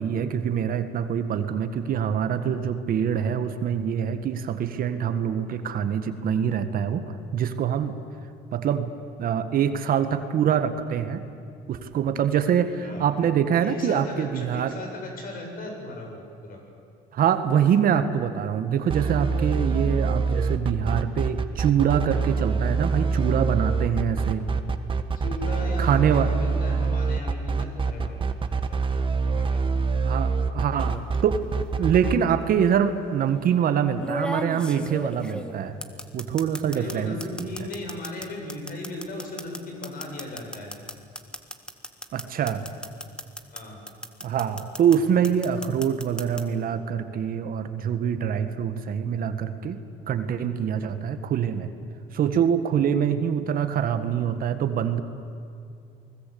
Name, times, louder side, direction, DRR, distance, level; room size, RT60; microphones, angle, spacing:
voice 1, 0.0-7.9 8.5-8.9 9.2-11.2 11.7-14.7 17.1-24.5 25.8-26.3 30.0-31.4 31.8-35.8 36.1-37.5 42.1-42.6 44.2-49.8 50.1-51.7 52.1-55.0, right 8 dB, 60° right, 9 dB, 1.7 m, -25 dB
voice 2, 12.8-13.1 13.6-16.6 25.1-28.6 28.9-30.0 31.8-31.9 36.7-40.7 43.5-43.8, left 2 dB, 60° left, 1 dB, 7.7 m, -37 dB
sound 1, 18.9-32.1, right 4 dB, 30° right, 1.5 m, -25 dB
sound 2, 30.8-31.2 32.4-32.5 34.0-37.0 37.2-43.6 43.9-45.0 45.2-46.4, left 1 dB, 5° left, 1.8 m, -35 dB
28.5 x 20.5 x 8.7 m, 2.4 s
cardioid pair, 110°, 17 cm